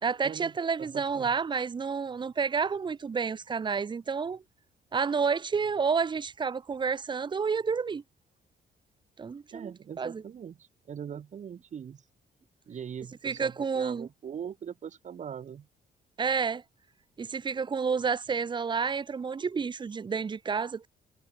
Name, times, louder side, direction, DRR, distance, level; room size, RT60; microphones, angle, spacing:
voice 1, 0.0-4.4 4.9-8.0 9.2-9.7 10.0-10.2 13.2-14.1 16.2-16.6 17.2-20.9, right 5 dB, 30° right, 1.0 m, -30 dB
voice 2, 0.8-1.3 9.5-12.1 12.7-15.7, right 8 dB, 45° right, 2.7 m, -41 dB
cardioid pair, 140°, 17 cm